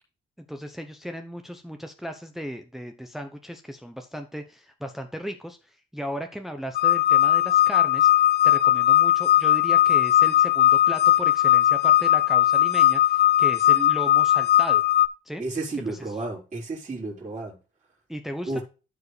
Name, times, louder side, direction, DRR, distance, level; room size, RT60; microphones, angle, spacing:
voice 1, 0.5-14.8 15.2-15.4 15.9-16.1 18.1-18.6, equal, ahead, 0.9 m, -36 dB
sound 1, 6.7-15.1, left 12 dB, 55° left, 0.5 m, -19 dB
voice 2, 15.4-17.6 18.5-18.6, right 2 dB, 35° right, 4.4 m, -32 dB
14.0 x 4.7 x 3.3 m
cardioid pair, 90°, 20 cm